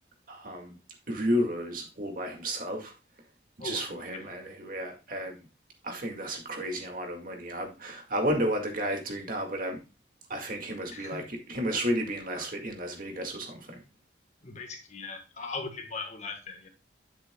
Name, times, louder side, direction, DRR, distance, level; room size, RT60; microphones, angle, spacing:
voice 1, 0.3-0.8 1.1-2.9 3.6-5.4 5.8-9.8 10.3-13.8, equal, 50° right, 2.0 m, -32 dB
voice 2, 3.6-4.3 10.9-11.3 14.4-16.7, left 3 dB, 40° left, 1.6 m, -39 dB
9.8 x 7.6 x 2.3 m
head